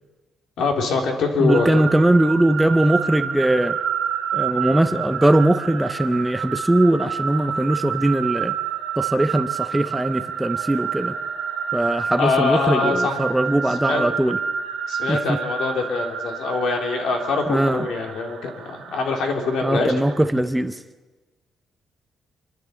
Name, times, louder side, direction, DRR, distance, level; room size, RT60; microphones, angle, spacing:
voice 1, 0.6-1.8 12.2-13.2 13.9-14.0 14.9-19.9, left 4 dB, 70° left, 3 dB, 3.3 m, -23 dB
voice 2, 1.4-3.8 4.3-8.6 9.0-11.1 11.7-14.4 15.1-15.4 17.5-17.9 19.6-20.8, right 1 dB, 5° right, 10 dB, 0.6 m, -20 dB
sound 1, 1.5-20.3, right 7 dB, 70° right, 2.4 m, -29 dB
27.5 x 11.5 x 8.3 m, 1.2 s
cardioid pair, 175°, 0 cm